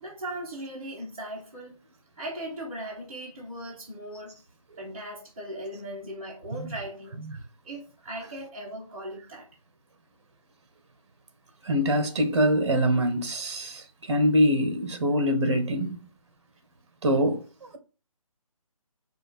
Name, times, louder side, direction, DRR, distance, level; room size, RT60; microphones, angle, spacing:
voice 1, 0.0-1.7 2.2-4.3 4.8-7.3 7.6-9.5, right 1 dB, 20° right, 1.0 m, -38 dB
voice 2, 11.6-16.1 17.0-17.4, equal, 50° right, 1.0 m, -24 dB
4.9 x 2.4 x 4.2 m
figure-of-eight pair, 165°, 18 cm